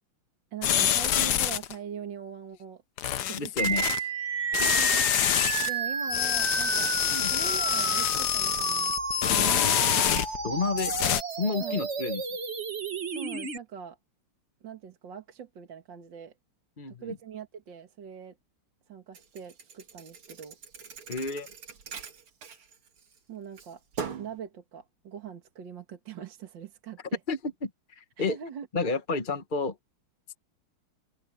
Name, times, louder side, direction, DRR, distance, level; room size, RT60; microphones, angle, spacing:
voice 1, 0.5-2.8 3.3-3.9 4.5-6.9 7.3-8.9 9.3-9.8 11.6-11.8 13.1-14.0 14.6-16.3 16.9-18.4 18.9-20.6 23.3-23.8 24.2-27.2 28.2-28.7, right 7 dB, 60° right, 2.3 m, -42 dB
sound 1, 0.6-1.7 3.0-4.0 4.5-5.7 6.1-10.5 10.8-11.2, left 11 dB, 60° left, 1.2 m, -26 dB
voice 2, 3.3-4.0 4.6-4.7 7.1-7.3 8.4-8.5 10.4-10.9 11.4-12.2 16.8-17.2 21.1-21.5 27.3-28.4 28.7-29.8, left 4 dB, 30° left, 1.0 m, -31 dB
sound 2, 3.6-13.6, right 5 dB, 35° right, 1.4 m, -31 dB
Thump thud, 19.1-23.2 23.6-24.4, right 6 dB, 80° right, 2.9 m, -41 dB
open air
omnidirectional pair, 2.3 m